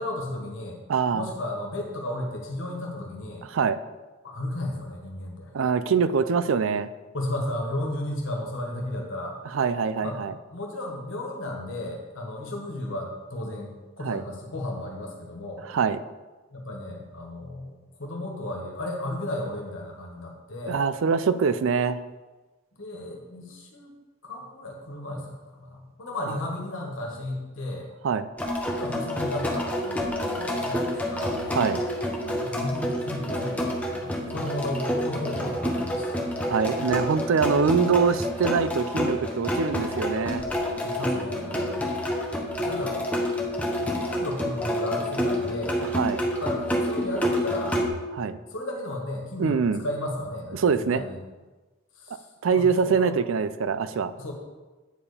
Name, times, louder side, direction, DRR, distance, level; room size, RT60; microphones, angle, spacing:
voice 1, 0.0-0.8 1.1-3.4 4.2-5.5 7.1-9.4 10.0-10.2 10.5-13.7 14.0-15.6 16.5-20.8 22.8-23.9 24.2-27.9 28.7-31.3 32.4-36.2 40.8-42.0 42.6-43.0 43.3-45.8 46.4-47.8 48.5-51.2 52.0-52.2 52.5-53.1 54.2-54.3, left 1 dB, 75° left, 0 dB, 1.5 m, -34 dB
voice 2, 0.9-1.3 3.5-3.8 5.5-6.9 9.5-10.3 14.0-14.2 15.7-16.0 20.7-22.0 28.0-28.3 31.5-31.8 36.5-40.4 45.9-46.2 48.1-48.4 49.4-49.8 50.5-51.0 52.1-54.1, right 5 dB, 80° right, 13 dB, 0.4 m, -24 dB
sound 1, 28.4-47.9, equal, 5° left, 0.9 m, -28 dB
8.9 x 4.8 x 5.0 m, 1.2 s
head